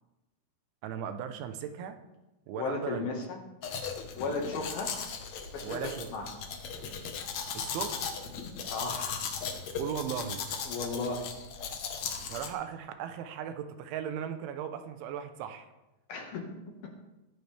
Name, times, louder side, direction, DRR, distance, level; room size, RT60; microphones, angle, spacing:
voice 1, 0.8-2.0 2.5-3.1 5.6-6.3 7.5-8.0 9.8-10.4 12.2-15.7, right 8 dB, 85° right, 8 dB, 3.3 m, -37 dB
voice 2, 2.5-3.4 4.2-4.9 5.5-6.2 8.6-9.3 10.7-11.3 16.1-16.9, left 3 dB, 60° left, 1 dB, 3.2 m, -35 dB
Domestic sounds home sounds, 3.6-12.5, left 6 dB, 85° left, 1.5 m, -37 dB
21.5 x 10.5 x 3.5 m, 1.0 s
omnidirectional pair, 5.4 m